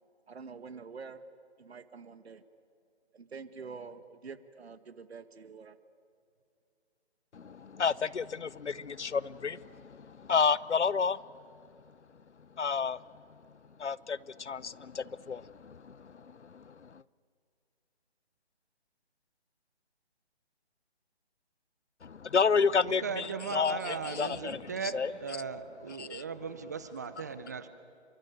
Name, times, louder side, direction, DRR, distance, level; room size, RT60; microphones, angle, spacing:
voice 1, 0.3-1.2 1.6-2.4 3.1-5.8, right 5 dB, 65° right, 1.7 m, -46 dB
voice 2, 7.3-11.2 12.6-13.0 13.8-17.0 22.0-25.1 26.0-26.2, left 5 dB, 85° left, 0.8 m, -31 dB
voice 3, 23.0-24.9 25.2-27.7, right 5 dB, 15° right, 0.6 m, -37 dB
27.5 x 23.5 x 9.1 m
figure-of-eight pair, 150°, 34 cm